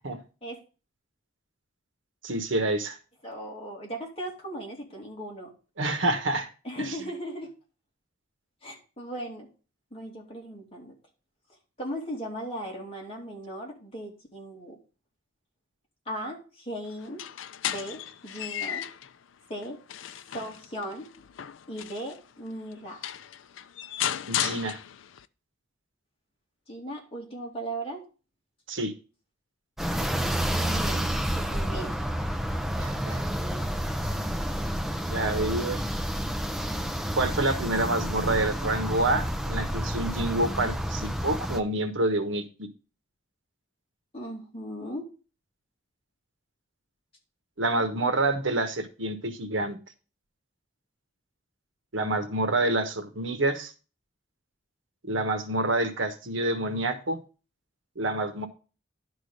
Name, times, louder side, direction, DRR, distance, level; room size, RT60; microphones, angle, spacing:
voice 1, 2.2-3.0 5.8-6.5 24.3-24.8 28.7-28.9 32.8-33.2 35.1-35.9 37.2-42.7 47.6-49.8 51.9-53.7 55.0-57.2 58.0-58.5, right 2 dB, 75° right, 7 dB, 1.3 m, -27 dB
voice 2, 3.2-5.5 6.6-7.5 8.6-9.5 9.9-10.9 11.8-14.8 16.1-17.2 17.7-18.9 19.5-19.8 20.3-21.1 21.7-23.0 26.7-28.0 30.7-31.1 31.3-31.9 35.1-35.2 44.1-45.1, right 1 dB, 30° left, -2 dB, 2.8 m, -37 dB
sound 1, 17.0-19.1 19.6-22.2 22.7-22.8 23.0-25.2, left 10 dB, 80° left, 0.4 m, -34 dB
sound 2, 29.8-41.6, equal, ahead, 0.6 m, -29 dB
11.0 x 3.9 x 6.5 m, 0.34 s
head